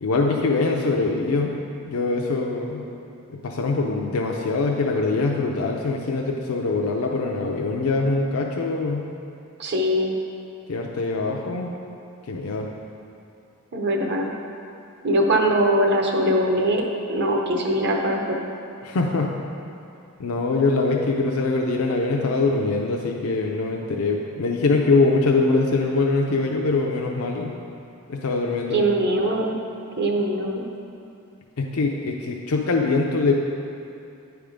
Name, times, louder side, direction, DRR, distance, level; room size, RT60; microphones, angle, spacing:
voice 1, 0.0-1.5 1.9-2.8 3.4-9.0 10.7-11.7 12.3-12.7 18.8-19.3 20.2-27.5 28.1-28.8 31.6-33.3, left 3 dB, 75° left, 0 dB, 0.5 m, -23 dB
voice 2, 9.6-10.1 13.7-14.3 15.0-16.8 17.1-18.4 28.7-29.6 30.0-30.6, right 1 dB, 50° right, 1 dB, 0.8 m, -21 dB
9.3 x 3.5 x 5.0 m, 2.6 s
head